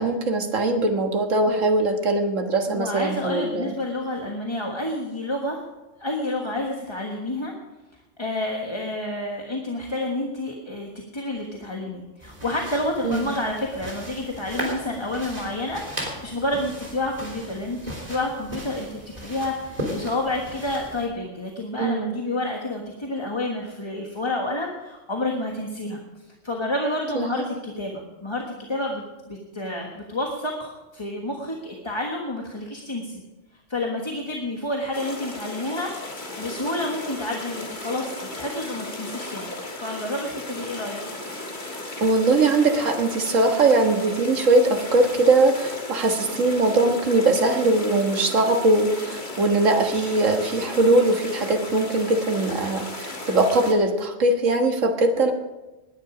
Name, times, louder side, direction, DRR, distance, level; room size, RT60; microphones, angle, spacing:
voice 1, 0.0-3.8 13.0-13.3 21.8-22.1 27.2-27.5 42.0-55.3, right 2 dB, 80° right, 4 dB, 1.9 m, -21 dB
voice 2, 2.7-5.6 6.0-7.5 8.2-26.0 26.4-33.2 33.7-39.5 39.8-41.0, left 1 dB, 20° left, 0 dB, 1.5 m, -29 dB
sound 1, 12.2-21.1, equal, 30° right, 3.6 m, -36 dB
sound 2, 34.9-53.7, left 2 dB, 40° left, 1.9 m, -35 dB
19.5 x 10.5 x 5.0 m, 1.1 s
omnidirectional pair, 1.3 m